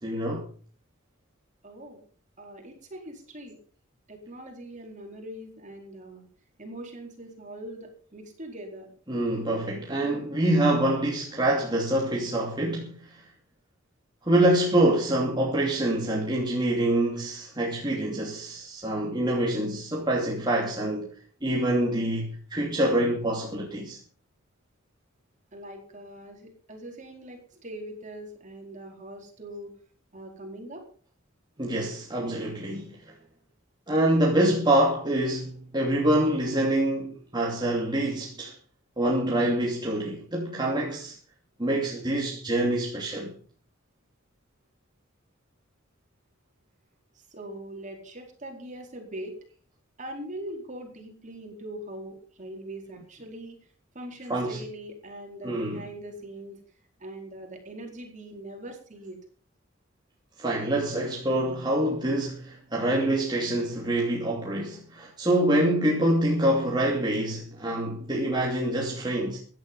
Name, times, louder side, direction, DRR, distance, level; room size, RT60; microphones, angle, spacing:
voice 1, 0.0-0.4 9.1-13.2 14.2-21.1 21.4-24.0 31.6-33.1 33.9-38.5 39.0-41.2 41.6-43.3 54.3-54.6 55.4-55.8 60.4-69.4, right 1 dB, 20° right, 2.7 m, -26 dB
voice 2, 1.6-2.0 2.4-3.6 4.1-6.3 6.6-8.9 25.5-29.7 30.1-30.8 47.1-49.4 50.0-53.6 53.9-56.6 57.0-59.2, right 1 dB, 40° right, 4.6 m, -41 dB
16.0 x 11.0 x 5.5 m
head